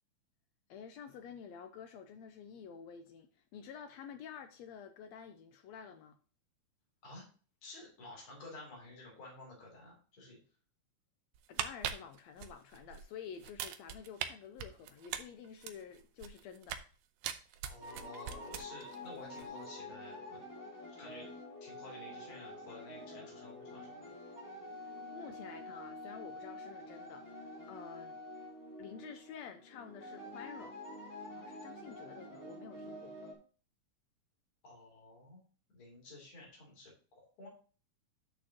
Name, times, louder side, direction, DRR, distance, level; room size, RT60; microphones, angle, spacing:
voice 1, 0.7-6.2 11.5-16.8 25.1-28.2 28.8-30.8 31.3-33.1, left 7 dB, 80° left, 1.6 m, -50 dB
voice 2, 7.6-10.4 17.7-20.4 21.0-21.3 21.6-24.0 34.6-35.4 35.7-37.5, left 2 dB, 40° left, 3.9 m, -52 dB
sound 1, 11.4-13.0 13.4-14.3 14.6-16.9 17.2-19.0 19.3-19.5, right 10 dB, 75° right, 2.0 m, -40 dB
sound 2, 17.8-33.3, left 1 dB, 10° left, 0.8 m, -48 dB
9.2 x 6.4 x 2.9 m
omnidirectional pair, 3.7 m